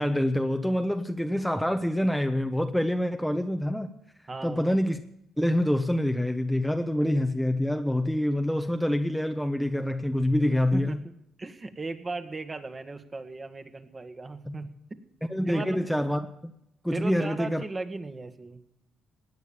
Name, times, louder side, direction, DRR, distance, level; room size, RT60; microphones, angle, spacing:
voice 1, 0.0-3.9 4.4-5.0 5.4-11.0 14.4-14.5 15.3-16.5 16.8-17.6, left 1 dB, ahead, 6 dB, 1.0 m, -26 dB
voice 2, 4.3-4.7 10.7-11.1 11.4-15.0 15.5-15.8 16.9-18.6, right 3 dB, 30° right, 8 dB, 1.8 m, -37 dB
17.5 x 9.4 x 7.1 m, 0.79 s
cardioid pair, 85°, 0 cm